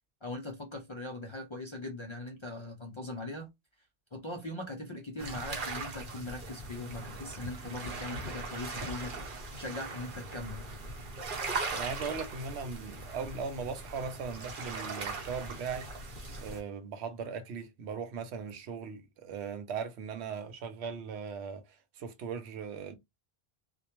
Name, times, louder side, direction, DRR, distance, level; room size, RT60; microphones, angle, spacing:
voice 1, 0.2-3.5 4.1-9.1 9.6-10.7, left 2 dB, 50° left, 0.3 m, -40 dB
sound 1, 5.2-16.6, right 3 dB, 55° right, 0.9 m, -40 dB
voice 2, 11.7-15.9 16.4-21.6 22.0-23.0, right 5 dB, 90° right, 0.9 m, -38 dB
2.2 x 2.1 x 2.9 m
omnidirectional pair, 1.1 m